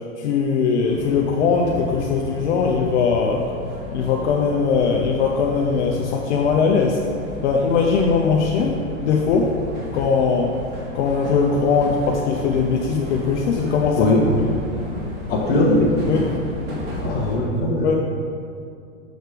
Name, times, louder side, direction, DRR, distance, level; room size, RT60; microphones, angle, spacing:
voice 1, 0.2-3.4 3.9-7.0 7.4-9.5 9.9-10.5 10.9-14.1 16.1-16.3 17.8-17.9, left 5 dB, 55° left, 0 dB, 0.7 m, -20 dB
sound 1, 0.9-17.4, equal, 25° right, 1.5 m, -33 dB
voice 2, 15.3-15.9 17.0-18.0, left 2 dB, 20° left, -4 dB, 1.4 m, -19 dB
6.5 x 4.6 x 5.0 m, 2.4 s
hypercardioid pair, 140°, 41 cm